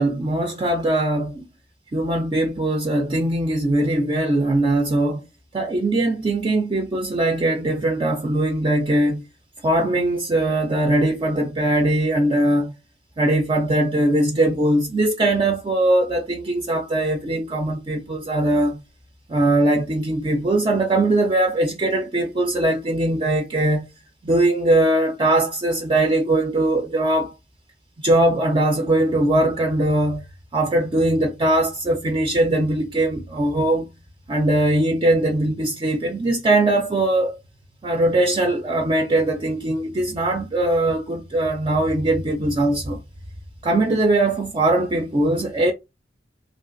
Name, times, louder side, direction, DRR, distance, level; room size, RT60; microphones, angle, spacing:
voice 1, 0.0-1.5 1.9-5.3 5.5-9.2 9.6-12.7 13.2-18.8 19.3-23.9 24.2-27.3 28.0-30.3 30.5-33.9 34.3-37.4 37.8-43.0 43.6-45.7, right 1 dB, 30° right, 0.4 m, -20 dB
3.2 x 2.3 x 2.5 m
head